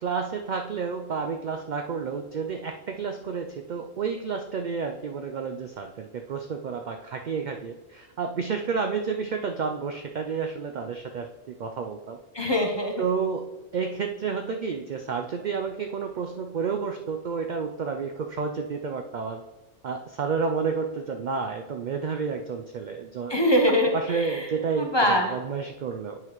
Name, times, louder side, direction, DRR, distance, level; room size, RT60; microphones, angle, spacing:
voice 1, 0.0-12.2 13.0-13.4 13.7-19.4 19.8-23.3 23.9-26.2, right 5 dB, 75° right, 4 dB, 0.4 m, -30 dB
voice 2, 12.3-13.0 23.3-24.5 24.8-25.4, equal, 25° left, 2 dB, 0.7 m, -23 dB
9.2 x 5.7 x 3.1 m, 1.1 s
omnidirectional pair, 1.3 m